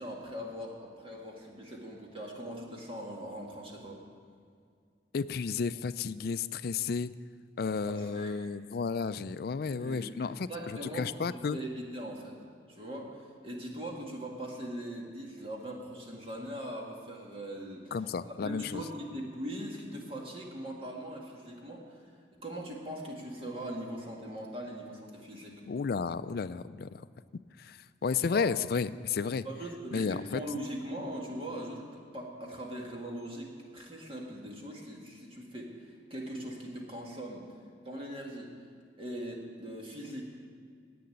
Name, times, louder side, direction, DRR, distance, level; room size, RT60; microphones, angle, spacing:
voice 1, 0.0-4.0 7.6-8.4 9.8-12.4 12.7-18.0 18.3-22.0 22.4-25.6 28.3-28.5 29.4-37.4 37.8-38.5 39.0-40.3, equal, 30° right, -1 dB, 1.9 m, -41 dB
voice 2, 5.1-7.1 7.6-11.6 17.9-18.8 25.6-27.1 27.6-29.4 29.9-30.4, left 5 dB, 55° left, 14 dB, 0.4 m, -32 dB
10.5 x 8.6 x 9.2 m, 2.2 s
head